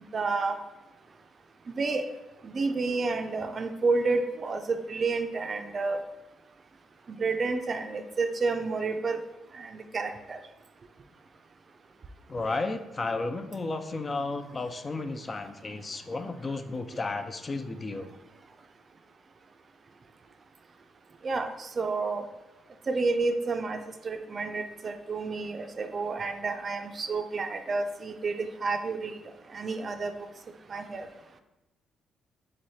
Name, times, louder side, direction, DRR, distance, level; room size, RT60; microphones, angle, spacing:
voice 1, 0.1-0.5 1.8-2.0 2.5-6.0 7.2-9.2 9.6-10.4 21.2-21.5 21.8-22.2 22.9-23.8 24.0-28.3 28.6-29.1 29.5-30.1 30.7-31.1, right 3 dB, 40° right, 7 dB, 0.4 m, -30 dB
voice 2, 12.3-18.1, left 3 dB, 30° left, 8 dB, 0.3 m, -33 dB
3.7 x 3.2 x 4.1 m, 1.0 s
cardioid pair, 90°, 0 cm